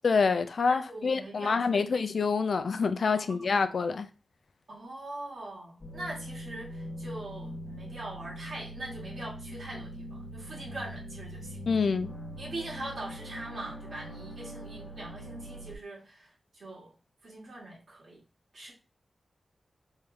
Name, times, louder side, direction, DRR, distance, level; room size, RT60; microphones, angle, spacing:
voice 1, 0.0-4.1 11.7-12.1, left 5 dB, 65° left, 0.4 m, -27 dB
voice 2, 0.7-2.1 3.1-3.5 4.7-11.6 12.4-16.9 17.2-18.2 18.5-18.7, right 2 dB, 65° right, 2.0 m, -42 dB
sound 1, 5.8-15.8, equal, 30° left, 0.8 m, -42 dB
3.6 x 3.0 x 3.3 m
wide cardioid pair, 95°, 0 cm